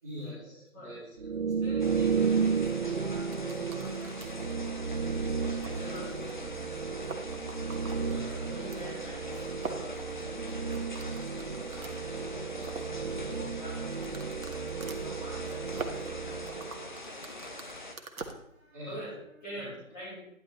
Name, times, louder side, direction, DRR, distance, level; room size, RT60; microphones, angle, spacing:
voice 1, 0.0-1.3 8.0-8.7 12.5-13.5 18.7-19.0 19.5-19.7, equal, 10° right, -11 dB, 1.5 m, -46 dB
sound 1, 1.2-17.0, right 5 dB, 55° right, 0.5 m, -33 dB
voice 2, 1.6-5.1 5.5-6.9 8.0-11.1 12.2-13.8 14.5-20.2, equal, 10° left, -9 dB, 3.3 m, -47 dB
sound 2, 1.8-17.9, left 2 dB, 35° left, 0.9 m, -44 dB
sound 3, 3.3-4.5 5.0-5.1 5.5-6.0 6.3-6.4 6.6-6.7 7.0-8.8 9.6-12.0 12.4-12.9 13.9-18.3, right 4 dB, 75° right, 1.5 m, -43 dB
11.0 x 10.5 x 3.1 m, 0.76 s
figure-of-eight pair, 170°, 42 cm